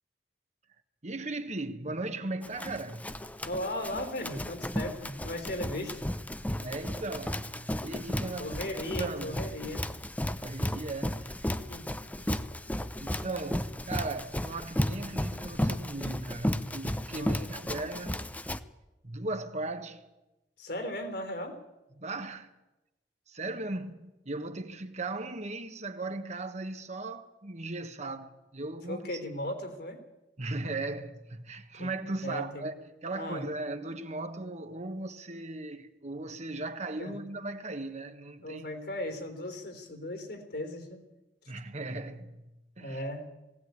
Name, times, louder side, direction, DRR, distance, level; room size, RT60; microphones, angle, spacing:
voice 1, 1.0-3.2 6.6-9.5 10.3-11.5 13.0-18.3 19.0-20.0 21.9-22.5 23.3-29.2 30.4-38.7 41.5-42.5 42.8-43.0, right 2 dB, 40° right, 1.4 m, -37 dB
Run, 2.4-18.6, left 1 dB, 10° left, 0.7 m, -34 dB
voice 2, 3.4-6.0 8.4-9.9 11.7-11.9 12.2-12.3 17.1-17.5 20.6-21.6 28.9-30.0 31.7-31.9 32.2-32.7 33.1-33.5 37.0-37.1 38.4-41.0 42.8-43.3, left 1 dB, 65° left, 3.6 m, -37 dB
19.5 x 17.0 x 9.6 m
head